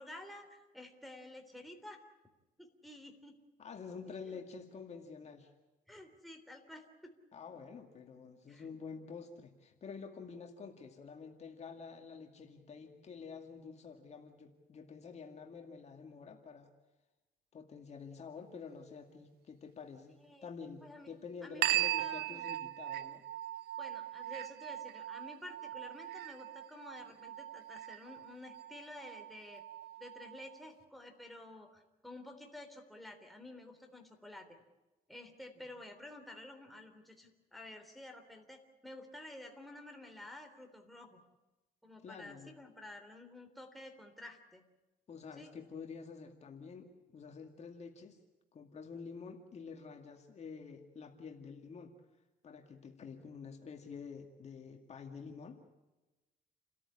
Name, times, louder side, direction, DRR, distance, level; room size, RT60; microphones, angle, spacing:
voice 1, 0.0-2.0 2.6-3.4 4.1-4.4 5.9-7.1 8.5-8.7 20.1-20.5 20.8-21.1 21.4-22.5 23.8-29.6 30.0-34.5 35.1-41.2 41.8-44.6 45.4-45.5, left 1 dB, ahead, 3 dB, 3.5 m, -51 dB
voice 2, 3.6-5.5 7.3-16.7 17.5-23.2 35.6-35.7 42.0-42.5 45.1-48.2 48.5-51.9 52.4-55.6, left 5 dB, 40° left, 4 dB, 2.3 m, -49 dB
sound 1, 21.6-30.6, right 14 dB, 70° right, 0.7 m, -39 dB
29.5 x 13.5 x 9.8 m, 1.1 s
cardioid pair, 110°, 17 cm